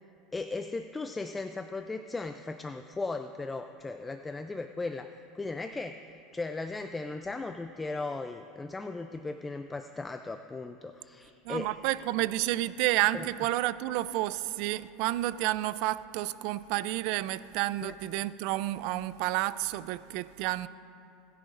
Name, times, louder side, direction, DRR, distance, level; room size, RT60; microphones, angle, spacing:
voice 1, 0.3-6.0 6.3-11.7 13.1-13.3 17.8-17.9, left 3 dB, 15° left, 0.4 m, -37 dB
voice 2, 11.4-20.7, right 16 dB, 60° right, 0.4 m, -30 dB
26.0 x 10.5 x 2.5 m
supercardioid pair, 125°, 0 cm